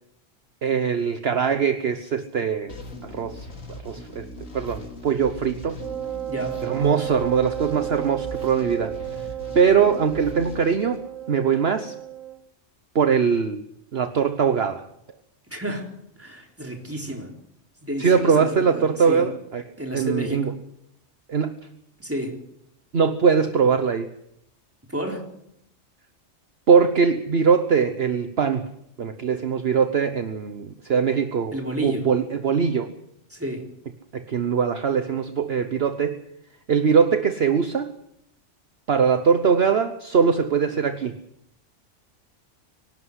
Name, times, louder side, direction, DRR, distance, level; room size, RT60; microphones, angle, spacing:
voice 1, 0.6-2.8 3.0-3.5 3.8-5.8 6.6-9.0 9.5-11.9 12.9-13.6 13.9-14.8 18.0-19.6 19.9-20.5 21.3-21.5 22.9-24.1 26.7-28.7 29.0-31.6 31.8-32.9 34.1-36.2 36.7-37.9 38.9-41.2, right 6 dB, 55° right, 9 dB, 1.2 m, -21 dB
sound 1, 2.7-11.6, left 1 dB, 85° left, 3.5 m, -40 dB
Wind instrument woodwind instrument, 5.8-12.4, right 12 dB, 90° right, 1.4 m, -33 dB
voice 2, 6.3-6.6 15.5-17.3 17.8-19.3 19.8-20.6 22.0-22.4 24.9-25.3 31.5-32.1 33.3-33.7, right 1 dB, 10° right, 2 dB, 3.8 m, -31 dB
24.0 x 12.0 x 9.7 m, 0.74 s
omnidirectional pair, 1.3 m